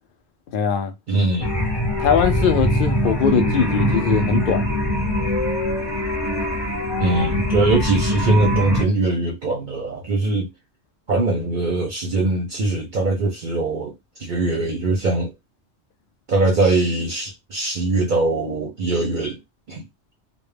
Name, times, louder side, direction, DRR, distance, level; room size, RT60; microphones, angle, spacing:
voice 1, 0.5-0.9 2.0-4.7, left 7 dB, 60° left, 0.6 m, -21 dB
voice 2, 1.1-1.5 7.0-10.5 11.1-15.3 16.3-19.4 19.7-19.8, right 2 dB, 50° right, 0.7 m, -22 dB
sound 1, 1.4-8.8, left 1 dB, 35° left, 0.8 m, -22 dB
2.3 x 2.1 x 3.2 m
omnidirectional pair, 1.2 m